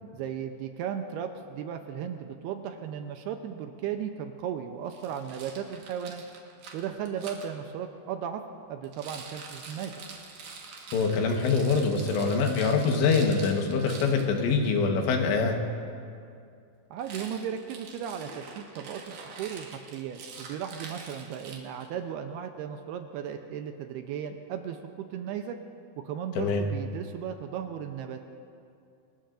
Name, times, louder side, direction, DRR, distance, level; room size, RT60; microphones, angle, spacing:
voice 1, 0.1-6.2 6.7-8.4 8.7-9.9 16.9-25.6 26.0-28.2, right 8 dB, 80° right, 6 dB, 2.5 m, -36 dB
Rattle, 4.9-7.5 8.8-14.3 17.0-21.9, right 5 dB, 60° right, 2.7 m, -45 dB
voice 2, 10.9-15.6 26.4-26.6, left 4 dB, 85° left, 3 dB, 3.6 m, -24 dB
26.0 x 19.5 x 2.6 m, 2.4 s
omnidirectional pair, 5.0 m